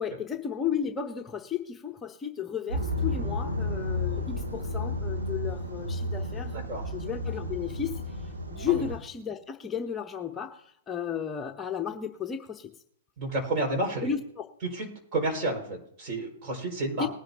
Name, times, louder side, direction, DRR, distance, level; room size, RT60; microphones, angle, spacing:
voice 1, 0.0-6.5 6.8-12.7 14.0-14.4 16.9-17.1, left 8 dB, 15° left, 4 dB, 0.8 m, -33 dB
sound 1, 2.7-9.0, left 1 dB, 90° right, 2.7 m, -32 dB
voice 2, 6.5-6.9 8.7-8.8 13.2-14.1 14.7-14.9 15.1-17.1, right 2 dB, 40° right, 1 dB, 5.7 m, -30 dB
20.0 x 11.0 x 2.9 m, 0.70 s
hypercardioid pair, 115°, 0 cm